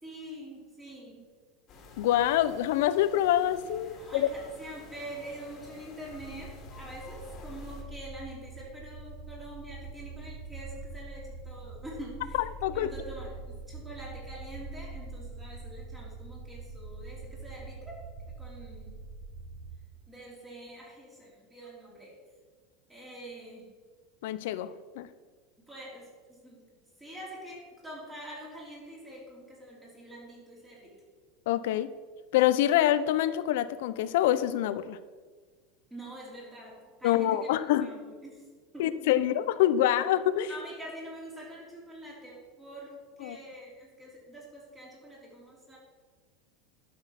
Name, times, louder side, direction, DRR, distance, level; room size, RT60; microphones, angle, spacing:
voice 1, 0.0-1.3 4.0-19.0 20.1-22.2 22.9-23.8 25.6-31.0 35.9-37.5 37.8-38.5 38.7-39.1 39.4-39.5 40.5-45.8, right 1 dB, 10° right, -4 dB, 3.4 m, -45 dB
sound 1, 1.7-7.8, left 4 dB, 35° left, 2.1 m, -50 dB
voice 2, 2.0-4.3 12.6-12.9 24.2-25.1 31.5-31.9 32.3-35.0 37.0-37.9 38.8-40.5 43.2-43.4, left 12 dB, 75° left, 14 dB, 0.6 m, -26 dB
sound 2, 6.1-19.8, right 3 dB, 45° right, 2.8 m, -44 dB
11.5 x 6.2 x 5.9 m, 1.5 s
supercardioid pair, 150°, 0 cm